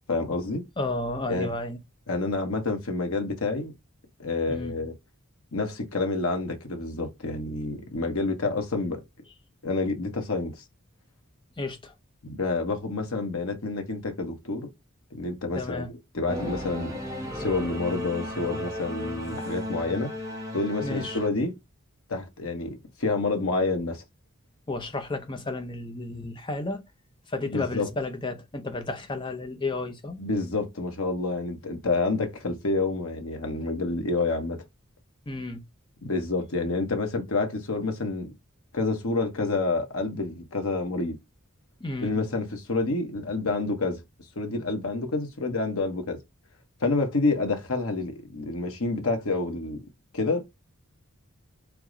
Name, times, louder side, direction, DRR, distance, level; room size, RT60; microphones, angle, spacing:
voice 1, 0.1-0.7 1.3-1.5 2.1-3.7 4.2-4.9 5.5-9.0 9.6-10.6 12.2-14.7 15.1-16.9 17.3-20.1 20.5-21.5 22.1-24.0 27.5-27.9 30.2-34.6 36.0-38.3 38.7-41.2 42.0-44.0 44.4-46.2 46.8-49.8 50.1-50.4, left 3 dB, 80° left, 1.1 m, -28 dB
voice 2, 0.8-1.8 4.5-4.7 11.6-11.9 15.5-15.9 20.8-21.2 24.7-26.8 27.3-30.2 35.3-35.6 41.8-42.2, left 2 dB, 20° left, 0.6 m, -32 dB
Singing / Musical instrument, 16.3-21.3, left 1 dB, 15° right, 0.9 m, -35 dB
4.7 x 2.1 x 3.7 m
head